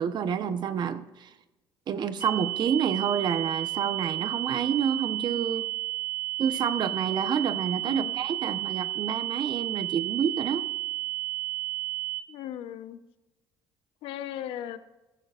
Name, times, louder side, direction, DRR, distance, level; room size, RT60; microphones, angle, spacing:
voice 1, 0.0-1.3 1.9-5.7 6.4-10.7, right 7 dB, 55° right, 10 dB, 1.0 m, -28 dB
sound 1, 2.2-12.2, right 17 dB, 25° right, 3.5 m, -32 dB
voice 2, 7.8-8.1 12.3-13.0 14.0-14.8, left 11 dB, 75° left, 11 dB, 0.9 m, -37 dB
14.5 x 14.5 x 2.5 m, 1.1 s
cardioid pair, 95°, 9 cm